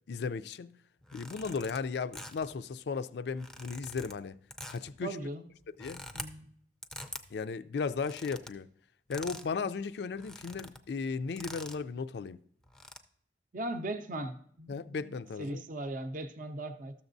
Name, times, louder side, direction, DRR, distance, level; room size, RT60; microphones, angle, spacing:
voice 1, 0.1-0.8 1.1-4.3 4.7-5.3 5.8-6.1 7.3-8.7 9.1-12.4 14.7-15.6, left 5 dB, 65° left, 0.4 m, -36 dB
sound 1, 1.0-1.8 2.1-2.6 3.3-4.2 4.5-4.9 5.6-6.3 6.8-7.2 7.9-8.5 9.1-9.5 9.8-9.9 10.1-10.8 11.4-11.9 12.6-13.0, left 1 dB, 5° left, 0.4 m, -45 dB
voice 2, 5.0-5.4 6.1-6.5 13.5-16.9, right 1 dB, 50° right, 0.5 m, -38 dB
13.0 x 7.1 x 2.6 m
head